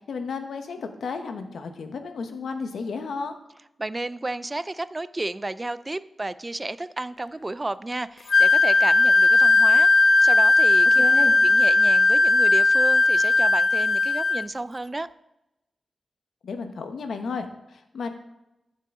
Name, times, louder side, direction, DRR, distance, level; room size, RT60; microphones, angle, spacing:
voice 1, 0.0-3.3 11.0-11.4 16.4-18.1, left 5 dB, 85° left, 7 dB, 0.9 m, -33 dB
voice 2, 3.8-9.9 10.2-11.0 11.4-15.1, right 2 dB, 25° right, 16 dB, 0.3 m, -32 dB
Wind instrument woodwind instrument, 8.3-14.4, left 3 dB, 65° left, 0.3 m, -17 dB
13.5 x 5.6 x 3.6 m, 0.89 s
wide cardioid pair, 85°, 0 cm